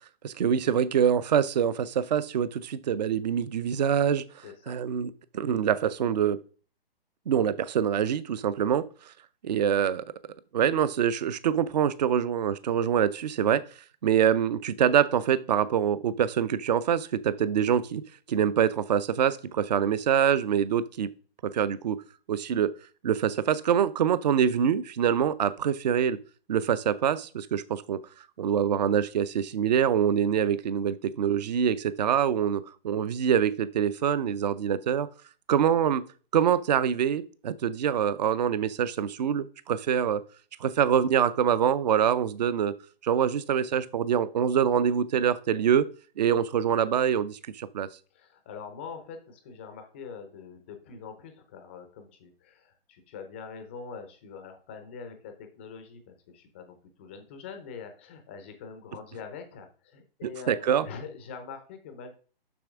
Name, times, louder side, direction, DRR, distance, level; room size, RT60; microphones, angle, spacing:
voice 1, 0.2-4.2 4.7-6.4 7.3-8.8 9.4-10.0 10.5-13.6 14.0-18.0 18.3-21.1 21.4-22.0 22.3-22.7 23.0-26.2 26.5-28.0 28.4-35.1 35.5-36.0 36.3-40.2 40.6-42.7 43.0-45.9 46.2-47.9 60.2-60.9, right 8 dB, 45° right, 16 dB, 0.5 m, -25 dB
voice 2, 4.4-4.7 48.1-62.1, left 5 dB, 10° left, 7 dB, 0.5 m, -44 dB
7.0 x 6.0 x 3.5 m, 0.39 s
hypercardioid pair, 155°, 30 cm